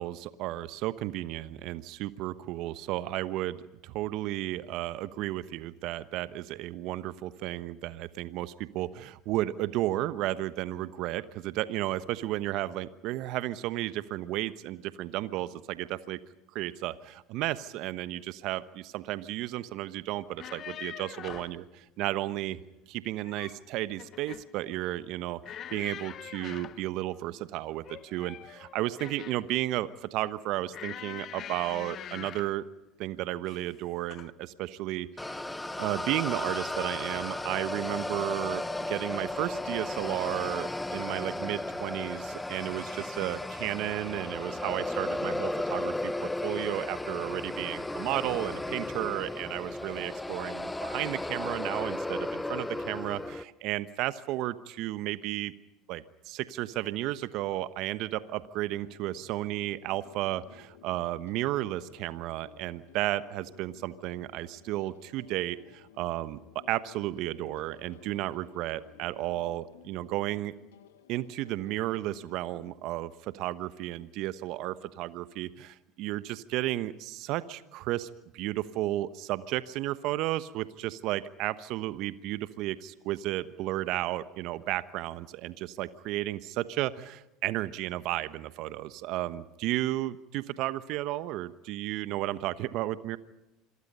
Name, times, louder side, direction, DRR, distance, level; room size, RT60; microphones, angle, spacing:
voice 1, 0.0-16.2 16.5-22.6 22.9-32.6 33.0-35.5 35.8-55.5 55.9-70.6 71.1-93.2, right 15 dB, 60° right, 14 dB, 1.1 m, -33 dB
sound 1, 20.2-21.6 23.0-23.6 24.0-24.5 25.4-26.8 27.8-29.5 30.7-32.6 33.4-33.7 34.1-34.3, left 10 dB, 45° left, 1.1 m, -43 dB
sound 2, 35.2-53.4, left 2 dB, 10° left, 1.3 m, -35 dB
sound 3, 58.8-72.7, left 9 dB, 80° left, 1.4 m, -56 dB
27.0 x 22.5 x 5.5 m, 0.95 s
hypercardioid pair, 75°, 0 cm